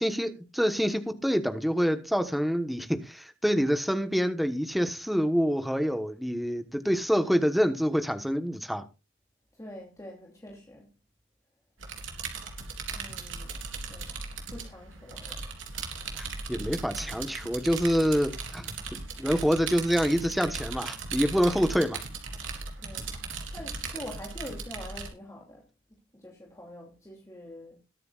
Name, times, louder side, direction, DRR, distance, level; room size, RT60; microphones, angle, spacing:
voice 1, 0.0-8.8 16.2-18.7 19.2-22.0, equal, ahead, 1.2 m, -26 dB
voice 2, 9.6-10.9 12.9-13.6 13.9-14.2 14.5-15.6 22.8-23.1 23.5-25.6 26.1-27.8, left 1 dB, 15° left, 2.6 m, -45 dB
sound 1, 11.8-25.1, right 4 dB, 70° right, 3.6 m, -38 dB
21.0 x 9.3 x 2.4 m
head